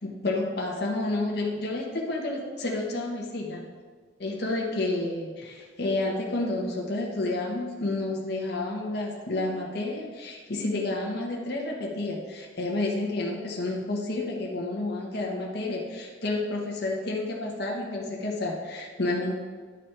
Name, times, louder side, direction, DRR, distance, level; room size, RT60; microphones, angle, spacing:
voice 1, 0.0-3.6 4.2-19.3, left 2 dB, 60° left, -1 dB, 1.1 m, -30 dB
10.5 x 4.1 x 4.4 m, 1.5 s
head